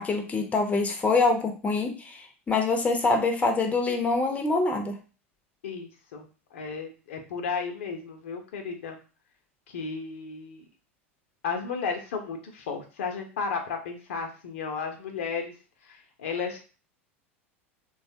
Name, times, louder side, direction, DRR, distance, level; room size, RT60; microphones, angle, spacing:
voice 1, 0.0-5.0, left 3 dB, 20° left, 3 dB, 0.7 m, -25 dB
voice 2, 5.6-6.2 6.5-9.0 9.7-10.6 11.4-15.5 15.9-16.6, left 5 dB, 65° left, 4 dB, 0.7 m, -33 dB
3.2 x 2.3 x 2.7 m, 0.34 s
figure-of-eight pair, 80°, 7 cm